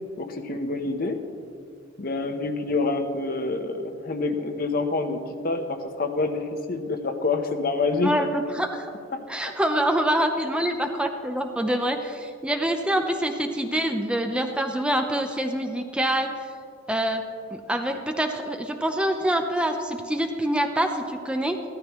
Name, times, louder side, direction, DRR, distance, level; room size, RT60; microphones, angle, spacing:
voice 1, 0.2-1.2 2.0-5.2 5.4-6.4 6.7-8.1 9.1-9.2, left 3 dB, 50° left, 6 dB, 0.9 m, -27 dB
voice 2, 8.0-8.9 9.3-16.5 16.9-21.6, right 1 dB, 5° right, 5 dB, 0.5 m, -26 dB
15.0 x 12.5 x 3.0 m, 2.4 s
head